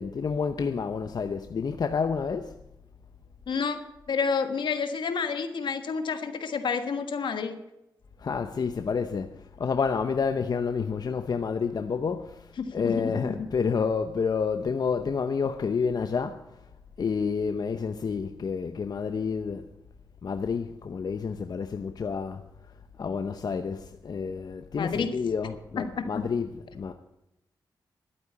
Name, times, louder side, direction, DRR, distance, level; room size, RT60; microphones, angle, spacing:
voice 1, 0.0-2.5 8.2-16.4 17.0-19.7 20.2-22.4 23.0-26.9, left 5 dB, 55° left, 0.8 m, -29 dB
voice 2, 3.5-3.8 4.1-7.6 12.6-13.3 24.8-25.1 25.8-26.2, left 5 dB, 75° left, 1.5 m, -29 dB
12.0 x 8.8 x 8.5 m
cardioid pair, 70°, 8 cm